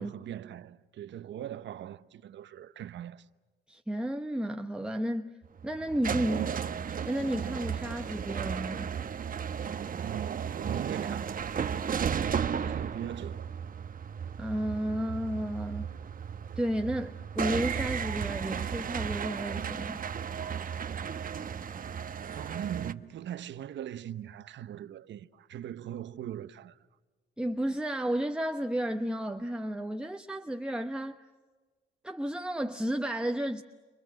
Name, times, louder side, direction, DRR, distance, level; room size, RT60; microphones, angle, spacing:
voice 1, 0.0-3.3 10.0-11.3 12.3-13.5 22.3-26.8, right 11 dB, 65° right, 1.0 m, -40 dB
voice 2, 3.7-5.3 5.6-6.5 7.0-8.9 14.4-15.9 16.6-20.0 27.4-31.2 32.0-33.6, right 1 dB, 5° right, 1.1 m, -32 dB
sound 1, 5.4-22.9, right 7 dB, 45° right, 1.1 m, -34 dB
29.5 x 25.5 x 7.7 m
cardioid pair, 90°, 20 cm